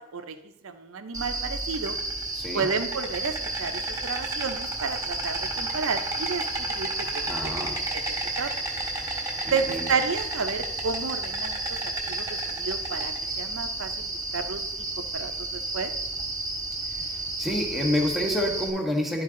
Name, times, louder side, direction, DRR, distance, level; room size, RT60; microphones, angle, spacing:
voice 1, 0.6-2.0 2.5-7.5 7.9-8.0 8.4-8.5 9.5-11.6 12.1-14.6 15.1-15.9, right 5 dB, 75° right, 9 dB, 0.6 m, -31 dB
Insect, 1.1-18.7, right 2 dB, 15° right, 1.5 m, -31 dB
voice 2, 2.3-2.7 7.3-7.8 9.4-9.9 17.0-17.1 17.4-19.2, left 1 dB, ahead, 0 dB, 1.1 m, -28 dB
11.5 x 4.7 x 3.7 m, 0.88 s
head